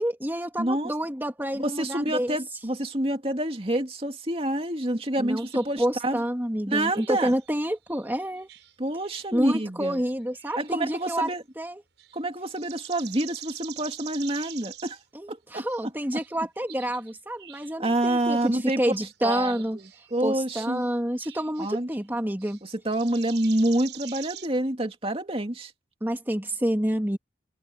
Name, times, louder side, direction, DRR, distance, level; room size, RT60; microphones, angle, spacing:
voice 1, 0.0-2.4 5.2-8.5 9.3-11.3 11.6-11.8 15.1-19.8 20.2-22.6 26.0-27.2, equal, 10° right, 2.2 m, -28 dB
voice 2, 0.6-0.9 1.6-6.2 6.7-7.3 8.8-10.0 10.5-11.4 12.1-15.0 15.3-15.6 17.8-18.8 19.2-20.8 21.6-21.9 22.6-25.7, right 1 dB, 30° right, 2.4 m, -27 dB
sound 1, 5.4-5.8 6.8-9.4 9.8-11.3 12.0-12.2 12.5-15.0 15.7-17.7 18.4-18.5 18.9-20.3 20.8-22.1 22.4-22.6 22.9-24.5, right 12 dB, 90° right, 6.6 m, -45 dB
open air
head